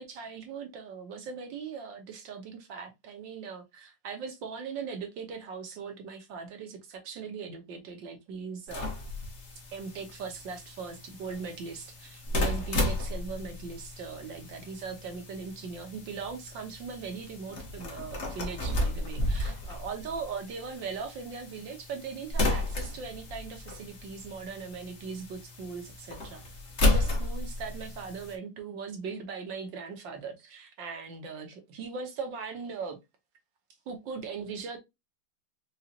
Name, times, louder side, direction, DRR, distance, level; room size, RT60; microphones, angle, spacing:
voice 1, 0.0-8.9 9.7-26.4 26.8-33.0 33.9-34.8, right 5 dB, 65° right, 1.4 m, -39 dB
sound 1, 8.7-28.3, left 2 dB, 40° left, 1.1 m, -33 dB
5.0 x 2.4 x 2.7 m
omnidirectional pair, 2.3 m